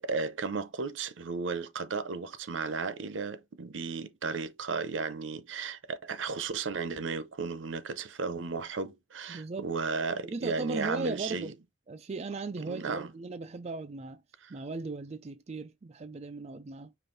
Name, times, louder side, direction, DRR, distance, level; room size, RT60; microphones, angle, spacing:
voice 1, 0.0-11.5 12.7-13.1, right 4 dB, 75° right, 0.7 m, -34 dB
voice 2, 9.3-9.7 10.2-11.6 11.9-14.2 14.5-16.9, right 3 dB, 35° right, 0.4 m, -38 dB
5.3 x 2.5 x 3.9 m
head